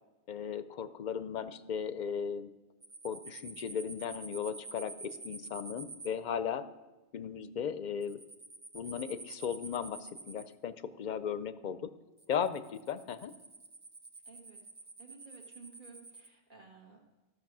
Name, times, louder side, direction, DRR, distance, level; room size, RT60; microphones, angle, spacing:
voice 1, 0.3-2.5 3.0-6.7 7.1-8.2 8.7-11.8 12.3-13.3, left 7 dB, 55° left, 13 dB, 0.6 m, -36 dB
sound 1, 2.8-6.1 8.0-10.5 12.2-16.3, right 3 dB, 30° right, 0.9 m, -48 dB
voice 2, 14.3-14.6 15.0-17.0, right 5 dB, 50° right, 1 dB, 1.8 m, -54 dB
14.5 x 6.5 x 6.0 m, 1.1 s
omnidirectional pair, 1.1 m